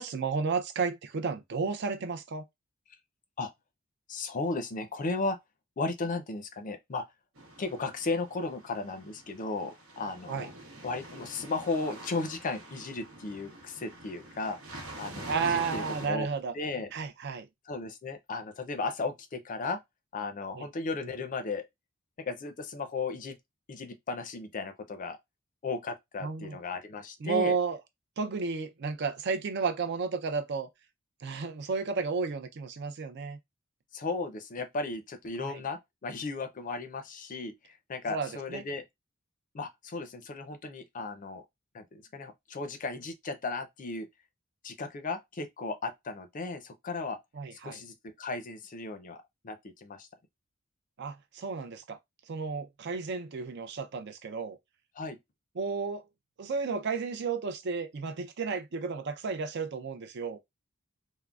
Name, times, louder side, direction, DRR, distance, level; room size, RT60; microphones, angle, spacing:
voice 1, 0.0-2.4 10.3-10.5 15.3-16.5 16.9-17.5 20.5-20.7 26.2-26.6 27.2-27.8 28.2-30.7 31.2-33.4 35.4-35.6 38.1-38.6 47.4-47.8 51.0-52.0 52.3-54.6 55.6-56.0 56.4-60.4, right 5 dB, 55° right, 0.5 m, -32 dB
voice 2, 4.1-5.4 5.8-7.0 7.6-10.5 10.8-16.3 16.5-16.9 17.7-19.8 20.1-21.7 22.2-23.4 23.7-25.2 25.6-27.6 33.9-38.8 39.5-41.4 41.7-44.1 44.6-47.2 47.5-50.1 54.9-55.2, left 3 dB, 40° left, 0.4 m, -35 dB
sound 1, 7.4-16.1, right 1 dB, 85° right, 0.9 m, -45 dB
3.6 x 2.0 x 2.3 m
head